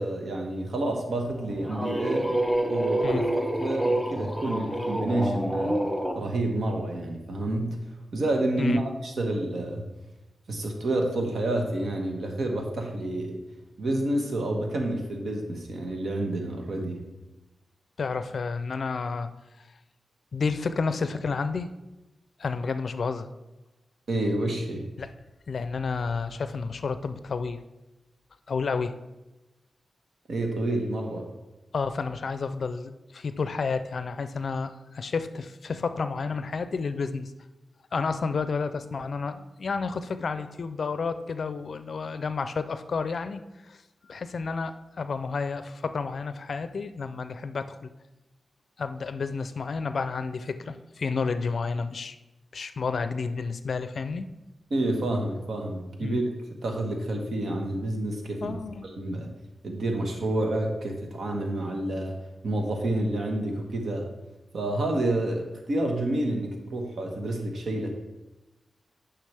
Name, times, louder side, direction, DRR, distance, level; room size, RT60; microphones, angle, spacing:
voice 1, 0.0-2.4 2.7-5.8 6.1-7.8 8.1-9.8 10.5-13.4 13.8-17.0 24.1-24.9 30.3-31.2 54.7-56.2 56.6-58.6 59.0-59.3 59.6-62.1 62.4-64.1 64.5-67.9, right 1 dB, 70° right, 2 dB, 1.4 m, -29 dB
sound 1, 1.3-6.2, right 1 dB, 5° right, 0.7 m, -27 dB
voice 2, 18.0-19.3 20.3-21.7 22.4-23.3 25.0-25.1 25.5-27.6 28.5-28.9 31.7-37.3 37.9-43.4 43.7-43.8 44.1-47.9 48.8-52.2 52.5-54.4 56.0-56.3 58.4-58.9, left 4 dB, 60° left, 11 dB, 0.4 m, -30 dB
9.7 x 5.8 x 3.4 m, 1.0 s
wide cardioid pair, 105°, 0 cm